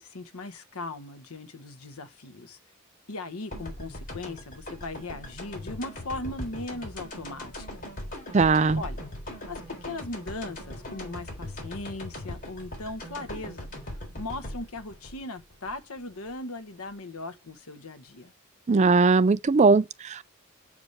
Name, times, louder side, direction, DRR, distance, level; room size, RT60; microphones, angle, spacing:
voice 1, 0.0-2.6 3.1-7.8 8.8-9.0 9.5-13.7 14.2-18.3, left 2 dB, 85° left, 1.2 m, -38 dB
sound 1, 3.5-16.3, left 1 dB, 40° left, 3.8 m, -40 dB
voice 2, 8.3-8.8 18.7-20.3, right 4 dB, 30° right, 0.4 m, -20 dB
7.0 x 4.9 x 6.6 m
head